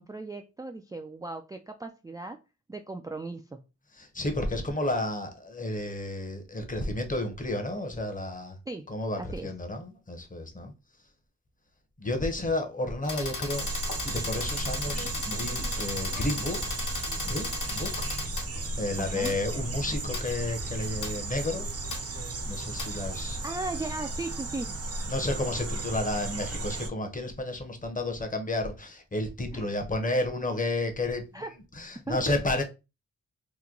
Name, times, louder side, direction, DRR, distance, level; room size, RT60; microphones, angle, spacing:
voice 1, 0.0-2.4 2.7-3.6 8.7-8.9 9.2-9.5 19.0-19.3 23.0-23.1 23.4-24.7 29.5-29.7 31.3-31.5 32.1-32.2, right 2 dB, 10° right, 0.3 m, -37 dB
voice 2, 3.9-8.6 8.9-10.7 12.0-13.7 14.0-16.7 17.2-18.5 18.8-21.7 22.4-23.4 25.1-31.4 31.7-32.6, left 2 dB, 25° left, 0.9 m, -31 dB
sound 1, 13.0-23.4, left 3 dB, 75° left, 1.2 m, -37 dB
sound 2, 13.5-26.9, right 2 dB, 50° right, 0.7 m, -35 dB
3.0 x 2.1 x 3.7 m
cardioid pair, 80°, 30 cm